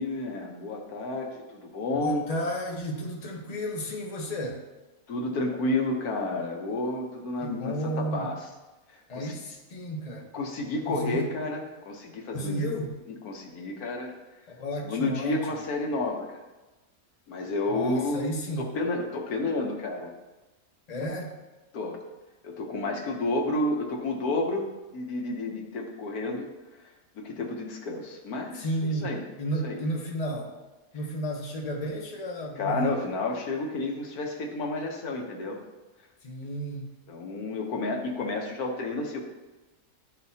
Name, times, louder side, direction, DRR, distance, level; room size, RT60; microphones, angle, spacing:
voice 1, 0.0-2.2 5.1-8.4 8.9-9.4 10.3-12.7 13.1-14.1 14.8-16.4 17.3-18.3 18.6-20.1 21.7-22.0 22.4-24.7 24.9-26.4 26.8-29.2 29.6-29.8 32.6-35.6 37.1-39.2, left 2 dB, 90° left, 1 dB, 1.5 m, -31 dB
voice 2, 1.9-4.6 7.4-8.3 9.1-10.3 10.9-11.3 12.3-13.0 14.6-15.6 17.7-18.7 20.9-21.3 28.6-30.6 30.9-33.0 36.2-36.9, right 1 dB, 30° left, -1 dB, 0.9 m, -32 dB
11.5 x 4.1 x 2.8 m, 1.1 s
omnidirectional pair, 1.5 m